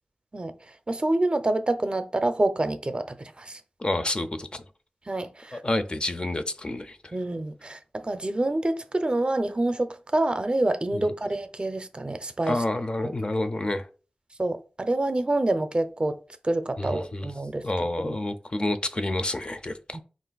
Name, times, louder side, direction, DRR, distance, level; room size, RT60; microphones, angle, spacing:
voice 1, 0.9-3.6 5.1-5.6 7.1-12.6 13.0-13.1 14.4-16.2 16.4-17.6 18.0-18.2 19.9-20.0, right 2 dB, 35° right, 0.5 m, -27 dB
voice 2, 3.8-4.6 5.5-7.0 10.9-11.1 12.5-13.9 16.8-17.3 17.6-20.0, left 1 dB, 35° left, 0.4 m, -29 dB
3.9 x 2.5 x 3.9 m
wide cardioid pair, 50°, 3 cm